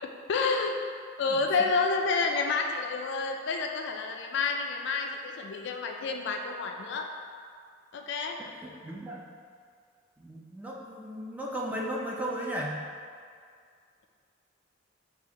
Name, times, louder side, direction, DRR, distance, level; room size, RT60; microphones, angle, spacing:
voice 1, 0.0-0.8 1.2-7.1 7.9-8.4, left 4 dB, 65° left, 3 dB, 0.3 m, -29 dB
voice 2, 8.6-9.3 10.2-12.8, right 1 dB, 10° right, -3 dB, 0.4 m, -35 dB
6.2 x 2.4 x 2.8 m, 2.2 s
head